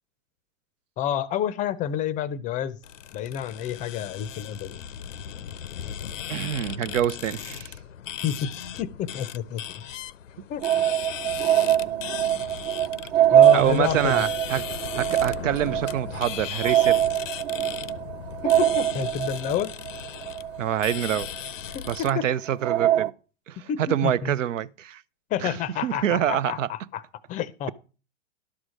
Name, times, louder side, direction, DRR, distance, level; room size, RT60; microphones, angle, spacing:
voice 1, 1.0-2.8 3.1-4.8 8.2-8.5 8.8-9.6 10.5-10.6 13.3-14.2 18.4-19.7 21.7-22.3 23.6-24.3 25.3-27.0 27.3-27.7, left 9 dB, 20° left, 0.5 m, -29 dB
sound 1, 2.8-22.1, left 9 dB, 90° left, 0.6 m, -37 dB
voice 2, 6.3-7.7 13.5-14.7 14.9-17.0 20.6-21.3 21.9-23.1 23.5-25.0 25.4-26.7, right 10 dB, 85° right, 0.6 m, -26 dB
sound 2, 10.6-21.5 21.9-22.0 22.6-23.1, right 12 dB, 35° right, 0.6 m, -23 dB
11.5 x 4.8 x 6.3 m
hypercardioid pair, 120°, 37 cm